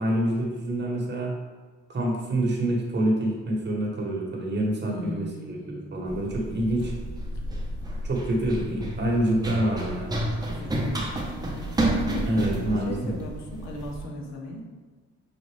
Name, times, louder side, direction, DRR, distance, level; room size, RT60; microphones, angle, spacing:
voice 1, 0.0-1.3 1.9-6.9 8.0-10.2 12.3-13.1, right 1 dB, 35° right, -1 dB, 1.2 m, -27 dB
voice 2, 4.8-6.0 6.6-6.9 10.5-14.7, left 1 dB, 60° left, 0 dB, 0.9 m, -38 dB
Run, 6.1-14.0, right 1 dB, 15° right, 0.8 m, -30 dB
5.8 x 2.5 x 3.3 m, 1.4 s
cardioid pair, 90°, 30 cm